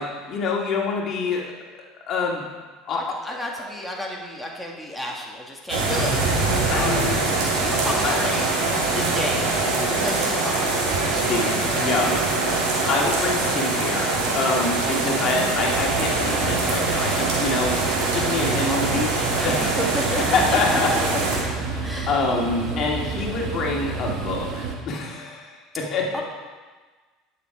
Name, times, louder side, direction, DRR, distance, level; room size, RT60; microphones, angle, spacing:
voice 1, 0.0-1.5 2.1-2.4 2.9-3.6 6.7-7.4 8.0-8.2 11.1-12.2 12.9-19.8 20.3-20.9 21.4-26.2, left 3 dB, 50° left, -1 dB, 2.0 m, -26 dB
voice 2, 2.9-6.2 6.7-7.1 7.6-8.6 8.9-9.6 10.0-11.4 14.7-15.2 19.4-20.3 20.5-20.6 20.9-21.0 21.8-22.1 26.1-26.2, left 1 dB, ahead, -2 dB, 1.8 m, -32 dB
sound 1, 5.7-21.4, right 3 dB, 75° right, 2.9 m, -23 dB
sound 2, 15.6-24.8, right 4 dB, 55° right, 1.5 m, -30 dB
11.0 x 6.7 x 4.8 m, 1.4 s
supercardioid pair, 85°, 0 cm